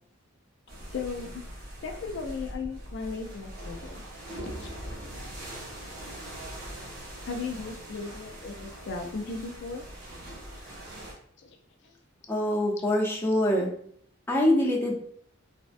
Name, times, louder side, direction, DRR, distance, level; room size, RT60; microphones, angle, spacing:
sound 1, 0.7-11.1, right 1 dB, 50° right, 0.9 m, -42 dB
voice 1, 0.9-1.4 1.8-4.0 4.3-5.0 5.2-5.3 7.2-9.8 11.4-11.6 11.8-11.9 12.8-12.9, left 4 dB, 60° left, 3 dB, 0.4 m, -37 dB
voice 2, 12.3-13.7 14.3-14.9, left 1 dB, 10° left, -3 dB, 0.6 m, -24 dB
3.4 x 2.1 x 2.5 m, 0.63 s
head